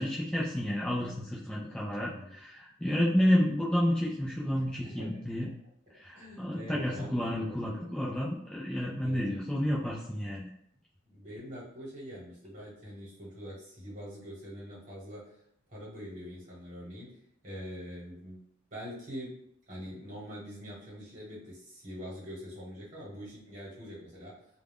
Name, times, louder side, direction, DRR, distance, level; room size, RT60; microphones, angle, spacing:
voice 1, 0.0-5.5 6.0-10.5, equal, 5° left, -6 dB, 0.3 m, -30 dB
voice 2, 1.9-2.4 4.8-5.2 6.1-7.9 9.0-9.4 11.0-15.2 15.7-18.4 18.7-19.4 19.7-24.4, equal, 40° right, -6 dB, 1.2 m, -44 dB
2.3 x 2.0 x 3.4 m, 0.71 s
head